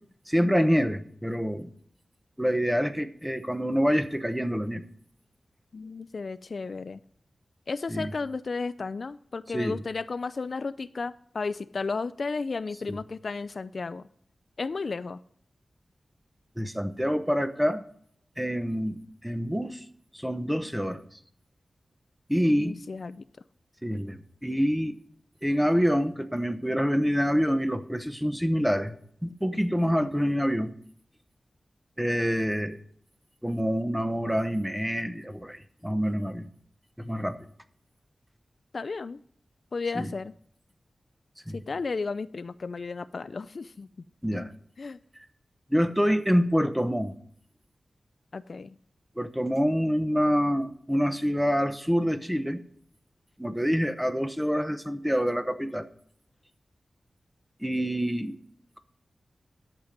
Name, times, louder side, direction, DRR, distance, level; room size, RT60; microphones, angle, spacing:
voice 1, 0.3-1.7 2.4-4.8 7.9-8.1 9.5-9.8 12.9-13.0 16.6-17.8 18.4-19.8 20.1-21.0 22.3-22.7 23.8-25.0 25.4-28.9 29.2-30.7 32.0-32.8 33.4-36.4 37.0-37.4 39.9-40.1 41.5-41.6 44.2-44.5 45.7-47.1 49.2-52.6 53.4-55.9 57.6-58.4, equal, 5° right, 10 dB, 0.8 m, -26 dB
voice 2, 5.7-7.0 7.7-14.1 14.6-15.2 22.5-23.2 38.7-39.2 39.7-40.3 41.5-43.9 44.3-44.5 44.8-45.0 48.3-48.8, left 4 dB, 55° left, 14 dB, 0.4 m, -33 dB
11.5 x 7.4 x 5.1 m, 0.64 s
wide cardioid pair, 125°, 0 cm